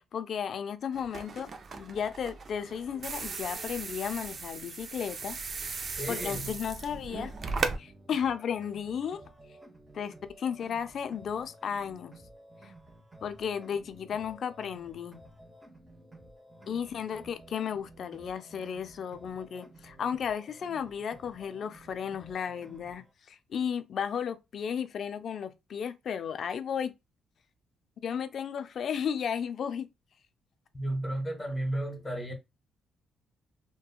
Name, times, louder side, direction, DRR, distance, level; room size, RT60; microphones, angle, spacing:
voice 1, 0.1-1.5 1.8-5.4 5.7-7.3 7.8-9.2 9.9-12.1 12.6-12.7 13.2-15.2 16.7-26.9 28.0-29.9, left 7 dB, 60° left, 0.3 m, -34 dB
sound 1, 0.9-7.8, right 4 dB, 45° right, 0.4 m, -37 dB
voice 2, 6.0-6.5 30.7-32.3, right 1 dB, 15° left, 0.9 m, -33 dB
sound 2, 7.1-23.1, right 1 dB, 20° right, 0.8 m, -54 dB
2.9 x 2.2 x 2.3 m
cardioid pair, 90°, 0 cm